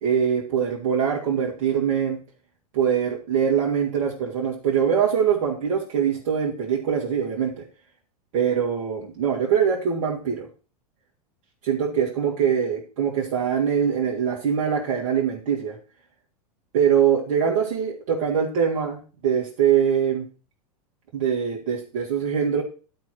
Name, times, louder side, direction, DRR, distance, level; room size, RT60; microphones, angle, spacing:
voice 1, 0.0-2.2 2.7-7.6 8.3-10.5 11.6-15.8 16.7-20.2 21.1-22.6, right 8 dB, 60° right, -2 dB, 2.6 m, -23 dB
11.5 x 4.6 x 6.3 m, 0.35 s
hypercardioid pair, 95°, 19 cm